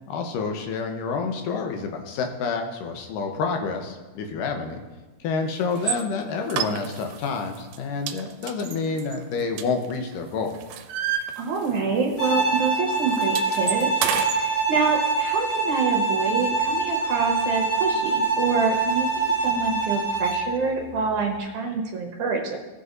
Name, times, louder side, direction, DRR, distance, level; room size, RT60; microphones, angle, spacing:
voice 1, 0.1-4.8 5.2-10.6, left 4 dB, 75° left, 4 dB, 2.5 m, -28 dB
sound 1, 5.8-6.0 6.5-7.2 7.6-7.8 8.1-10.1 10.4-11.9 12.2-12.4 12.7-14.4, right 10 dB, 85° right, 2.3 m, -30 dB
voice 2, 11.4-13.9 14.4-22.6, right 4 dB, 65° right, 0 dB, 2.5 m, -26 dB
Bowed string instrument, 12.2-20.6, right 3 dB, 45° left, 3.7 m, -24 dB
17.5 x 6.8 x 2.6 m, 1.2 s
omnidirectional pair, 3.9 m